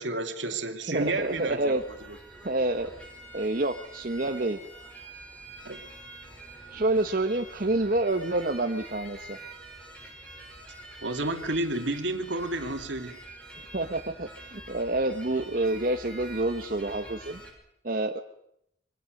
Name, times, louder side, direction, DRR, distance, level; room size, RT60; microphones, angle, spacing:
voice 1, 0.0-1.8 5.6-5.8 11.0-13.2, right 2 dB, 75° right, 6 dB, 2.6 m, -30 dB
sound 1, 0.9-17.5, right 2 dB, 5° left, 5.6 m, -46 dB
voice 2, 0.9-1.8 2.4-2.9 3.3-4.6 6.7-9.4 13.7-17.4 17.8-18.2, right 2 dB, 45° right, 4 dB, 1.1 m, -28 dB
26.5 x 23.0 x 6.5 m, 0.77 s
head